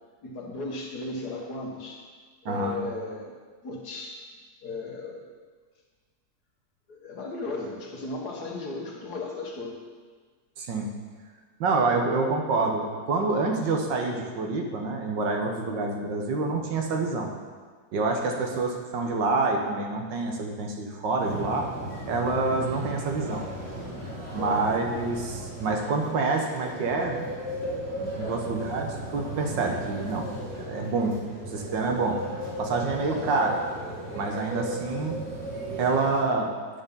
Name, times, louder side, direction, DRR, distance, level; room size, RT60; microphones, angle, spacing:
voice 1, 0.2-2.1 2.4-3.3 3.6-4.2 4.6-5.3 6.9-9.8 18.4-18.5 24.4-24.7 28.2-28.4 33.1-33.4, left 3 dB, 60° left, 0 dB, 1.9 m, -36 dB
voice 2, 2.5-2.8 10.6-10.9 11.6-17.3 17.9-21.7 22.1-23.5 24.3-27.3 28.0-30.3 30.5-31.1 31.5-32.2 32.6-33.6 34.1-35.2 35.8-36.5, right 3 dB, 80° right, 2 dB, 1.8 m, -27 dB
sound 1, 21.2-36.2, right 1 dB, 55° right, 3.3 m, -36 dB
9.5 x 6.7 x 5.5 m, 1.5 s
omnidirectional pair, 1.9 m